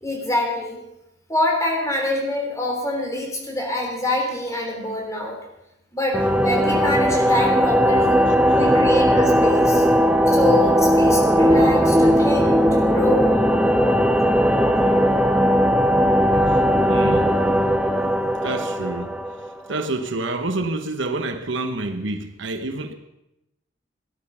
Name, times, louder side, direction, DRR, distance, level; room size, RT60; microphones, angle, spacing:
voice 1, 0.0-0.8 1.3-5.4 5.9-8.2 8.5-9.8 10.3-13.4 13.7-13.9, left 1 dB, 15° left, 3.3 m, -25 dB
sound 1, 6.1-19.7, equal, 5° right, 0.8 m, -18 dB
voice 2, 16.9-17.3 18.4-19.2 19.7-22.9, right 2 dB, 70° right, 1.1 m, -28 dB
17.5 x 11.0 x 5.6 m
head